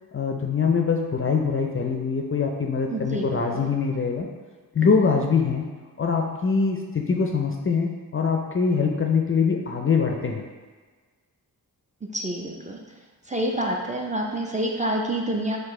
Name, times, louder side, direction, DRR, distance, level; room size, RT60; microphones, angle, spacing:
voice 1, 0.1-4.3 4.7-5.6 6.0-10.5, left 5 dB, 35° left, 1 dB, 0.4 m, -23 dB
voice 2, 2.9-3.4 12.1-12.8 13.3-15.6, right 1 dB, 20° right, 0 dB, 0.5 m, -27 dB
4.7 x 2.5 x 3.6 m, 1.4 s
wide cardioid pair, 70°, 38 cm